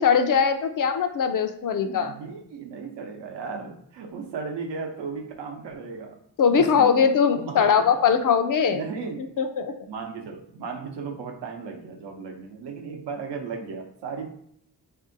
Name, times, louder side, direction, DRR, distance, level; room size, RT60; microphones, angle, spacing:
voice 1, 0.0-2.1 6.4-8.8 9.4-9.7, left 6 dB, 50° left, 8 dB, 0.5 m, -21 dB
voice 2, 1.9-6.2 6.5-7.1 7.4-7.9 8.7-9.2 9.9-14.3, right 5 dB, 75° right, 3 dB, 0.8 m, -35 dB
3.4 x 2.7 x 2.6 m, 0.69 s
supercardioid pair, 50°, 42 cm